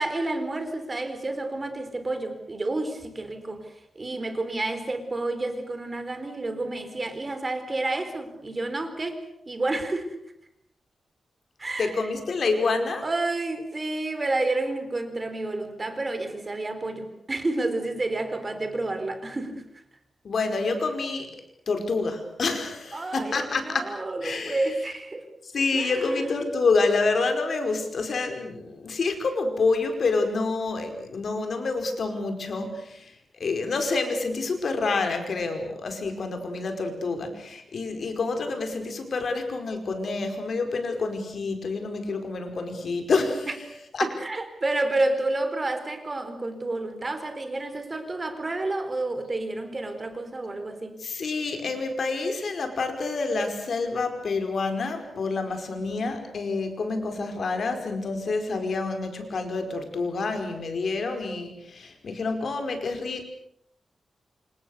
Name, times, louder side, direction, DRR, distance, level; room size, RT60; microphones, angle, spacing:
voice 1, 0.0-10.2 11.6-12.1 13.0-19.6 22.9-25.3 25.7-26.2 43.5-43.6 44.0-51.0, right 2 dB, 30° right, 8 dB, 4.0 m, -30 dB
voice 2, 11.8-13.0 20.2-21.3 21.7-23.9 24.2-24.7 25.4-33.1 33.4-43.6 43.9-44.1 51.0-63.2, left 3 dB, 60° left, 6 dB, 5.0 m, -28 dB
28.0 x 27.5 x 6.7 m, 0.74 s
wide cardioid pair, 125°, 0 cm